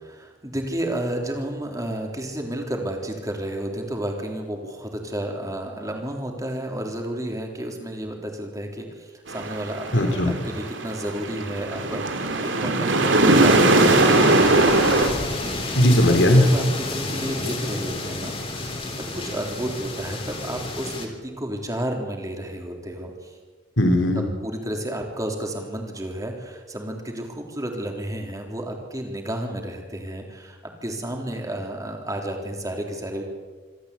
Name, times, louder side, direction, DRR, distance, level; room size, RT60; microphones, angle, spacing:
voice 1, 0.0-15.0 15.4-15.9 16.3-23.3 24.2-33.2, right 1 dB, 20° right, 2 dB, 3.5 m, -32 dB
sound 1, 9.3-15.1, right 2 dB, 85° right, 2.8 m, -19 dB
voice 2, 9.9-10.4 15.8-16.4 23.8-24.2, left 1 dB, 85° left, 4 dB, 3.1 m, -17 dB
sound 2, 13.3-21.1, left 2 dB, 30° left, 3.5 m, -31 dB
26.0 x 13.5 x 8.4 m, 1.4 s
head